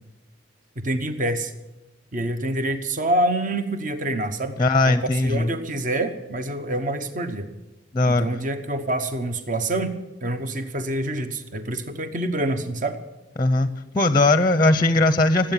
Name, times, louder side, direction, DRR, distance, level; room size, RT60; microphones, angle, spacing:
voice 1, 0.8-1.5 2.1-4.6 4.8-5.0 5.2-7.5 8.1-9.9 10.2-13.0, right 1 dB, 40° right, 9 dB, 1.0 m, -26 dB
voice 2, 4.6-5.5 7.9-8.3 13.4-13.7 13.9-15.5, left 2 dB, 20° left, 12 dB, 0.6 m, -19 dB
18.0 x 8.7 x 9.0 m, 1.0 s
head